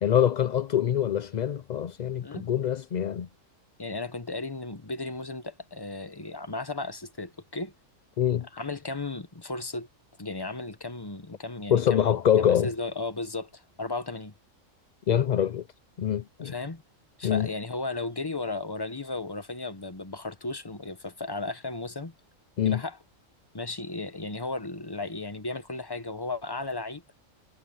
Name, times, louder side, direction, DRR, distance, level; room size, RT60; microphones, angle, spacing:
voice 1, 0.0-3.3 8.2-8.5 11.7-12.7 15.1-15.7 16.0-16.5 17.2-17.5 22.6-22.8, left 9 dB, 60° left, 0.4 m, -24 dB
voice 2, 3.8-7.7 8.5-9.9 10.2-12.1 12.6-14.3 16.4-16.8 17.2-22.1 22.6-23.0 23.5-27.0, left 3 dB, 20° left, 1.1 m, -35 dB
omnidirectional pair, 1.3 m